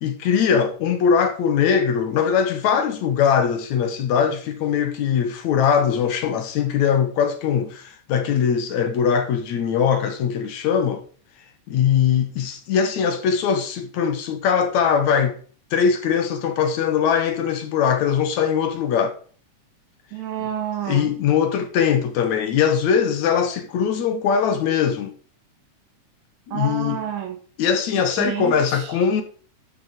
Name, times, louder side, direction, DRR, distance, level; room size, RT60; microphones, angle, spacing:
voice 1, 0.0-11.0 11.7-15.4 15.7-19.2 20.9-25.1 26.5-27.0 27.6-29.2, left 7 dB, 70° left, 2.5 m, -21 dB
voice 2, 20.1-21.1 26.5-27.4 28.2-28.9, right 9 dB, 65° right, 2.7 m, -29 dB
12.0 x 6.3 x 4.3 m
omnidirectional pair, 3.6 m